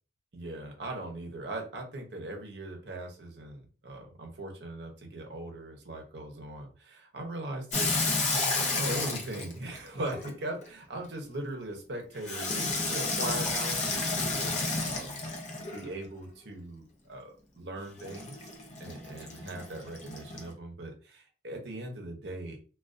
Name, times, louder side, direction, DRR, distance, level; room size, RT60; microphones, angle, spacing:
voice 1, 0.3-7.9 8.3-15.2 15.7-18.5 18.8-22.6, right 1 dB, 65° right, 2 dB, 0.7 m, -40 dB
Water tap faucet / Sink (filling or washing), 7.7-10.7 12.2-16.0 18.0-20.5, left 3 dB, 40° left, 0.5 m, -32 dB
2.3 x 2.2 x 2.4 m, 0.37 s
head